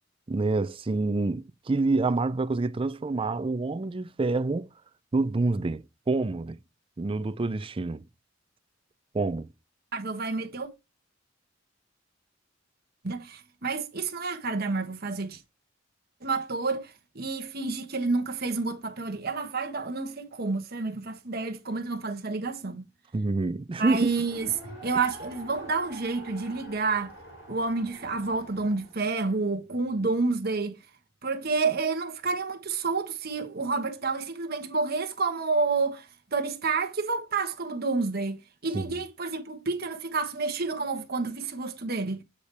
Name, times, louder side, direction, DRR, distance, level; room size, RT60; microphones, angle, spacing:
voice 1, 0.3-4.7 5.1-6.6 7.0-8.0 9.1-9.5 23.1-24.1 38.7-38.8, right 3 dB, 30° right, 0.4 m, -27 dB
voice 2, 9.9-10.7 13.0-15.4 16.2-22.9 23.8-24.5 24.8-27.1 27.5-30.8 31.2-36.1 36.3-42.2, right 4 dB, 55° right, 1.3 m, -29 dB
Race car auto racing, 23.8-29.0, right 1 dB, 65° left, 3.5 m, -46 dB
8.3 x 5.1 x 3.3 m
head